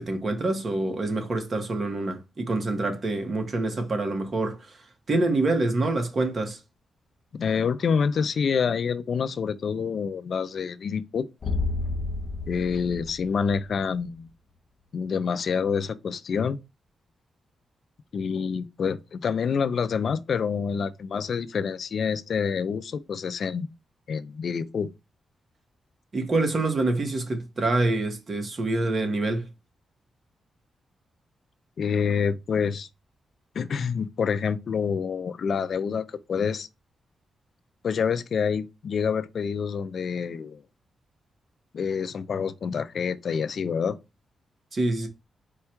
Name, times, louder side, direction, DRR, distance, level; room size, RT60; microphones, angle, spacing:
voice 1, 0.0-4.7 5.1-6.6 26.1-29.5 44.7-45.1, right 2 dB, 45° right, 1.1 m, -26 dB
voice 2, 7.3-11.3 12.5-14.3 14.9-16.6 18.1-23.7 24.1-24.9 31.8-32.9 33.6-36.7 37.8-40.6 41.7-44.0, left 6 dB, 65° left, 0.4 m, -27 dB
sound 1, 11.4-14.0, left 3 dB, 45° left, 0.8 m, -31 dB
4.5 x 2.2 x 4.4 m
cardioid pair, 85°, 0 cm